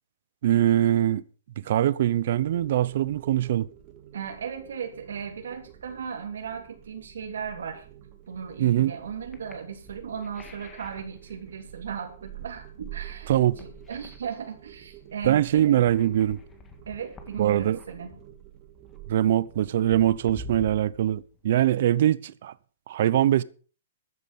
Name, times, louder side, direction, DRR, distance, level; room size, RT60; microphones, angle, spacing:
voice 1, 0.4-1.2 1.6-3.7 8.6-8.9 13.3-13.6 15.3-16.4 17.4-17.8 19.1-22.5 22.9-23.4, right 12 dB, 55° right, 0.7 m, -22 dB
sound 1, 2.4-20.9, right 12 dB, 30° right, 2.4 m, -48 dB
voice 2, 4.1-7.9 8.3-15.7 16.9-18.1, right 7 dB, 85° right, 3.1 m, -37 dB
sound 2, 8.3-21.7, left 3 dB, 15° left, 1.9 m, -49 dB
14.0 x 9.8 x 5.4 m
hypercardioid pair, 155°, 0 cm